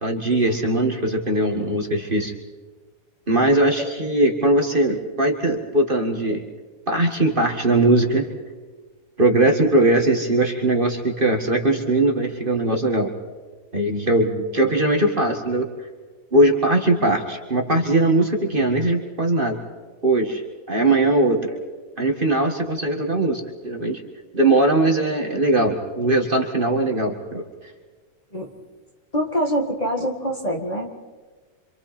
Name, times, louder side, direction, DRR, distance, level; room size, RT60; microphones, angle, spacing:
voice 1, 0.0-2.3 3.3-6.4 6.9-8.3 9.2-13.1 13.7-15.7 16.3-19.6 20.0-20.4 20.7-21.6 22.0-24.0 24.3-27.4, right 2 dB, 30° right, 2 dB, 2.0 m, -20 dB
voice 2, 29.1-31.1, equal, 25° left, 1 dB, 1.9 m, -25 dB
27.0 x 26.5 x 4.4 m, 1.4 s
omnidirectional pair, 1.7 m